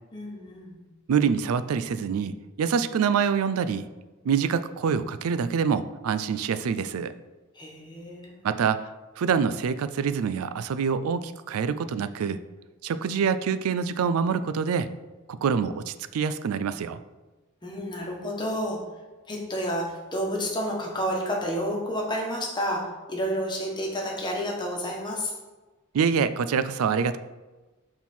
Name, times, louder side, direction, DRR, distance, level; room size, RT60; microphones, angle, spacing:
voice 1, 0.1-0.8 7.5-8.3 17.6-18.8 19.3-25.3, equal, 20° left, -1 dB, 1.2 m, -30 dB
voice 2, 1.1-3.9 4.2-7.1 8.4-8.9 9.2-12.5 12.8-14.9 15.3-17.0 25.9-27.2, right 6 dB, 75° right, 14 dB, 0.4 m, -26 dB
5.6 x 4.4 x 4.3 m, 1.2 s
head